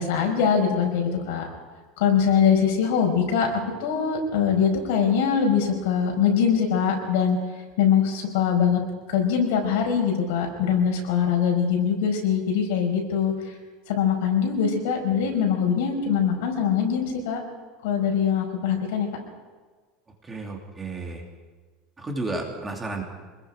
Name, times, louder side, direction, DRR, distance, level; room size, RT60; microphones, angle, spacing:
voice 1, 0.0-1.5 2.0-3.5 3.8-7.4 7.8-8.8 9.1-13.3 13.9-17.4 17.8-19.1, left 7 dB, 80° left, 2 dB, 5.3 m, -22 dB
voice 2, 20.2-21.2 22.0-23.0, right 2 dB, 15° right, 1 dB, 2.7 m, -32 dB
25.5 x 20.5 x 5.0 m, 1.4 s
supercardioid pair, 165°, 0 cm